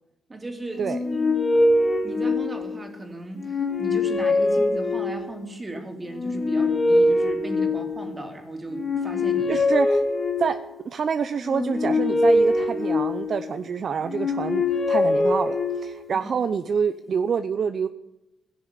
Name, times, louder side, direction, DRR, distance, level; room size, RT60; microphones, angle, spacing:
voice 1, 0.3-1.3 2.0-9.6 16.1-16.3, right 2 dB, 20° right, 4 dB, 3.0 m, -36 dB
sound 1, 0.8-2.9 3.4-5.4 6.1-8.2 8.7-10.7 11.4-13.6 14.0-16.1, left 2 dB, 30° left, 2.6 m, -23 dB
voice 2, 9.5-10.0 10.4-17.9, right 6 dB, 55° right, 10 dB, 0.7 m, -27 dB
16.5 x 6.9 x 10.0 m, 0.91 s
cardioid pair, 90°, 0 cm